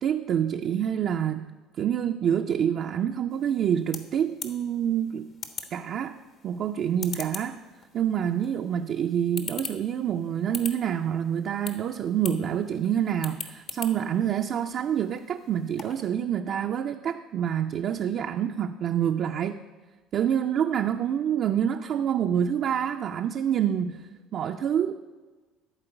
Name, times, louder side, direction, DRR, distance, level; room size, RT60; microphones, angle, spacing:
voice 1, 0.0-1.5 1.8-5.3 5.7-6.2 6.4-7.6 7.9-19.6 20.1-24.9, right 9 dB, 55° right, 5 dB, 0.4 m, -27 dB
sound 1, 3.3-16.1, left 5 dB, 55° left, 1.2 m, -43 dB
12.0 x 4.4 x 7.8 m, 1.3 s
hypercardioid pair, 65°, 0 cm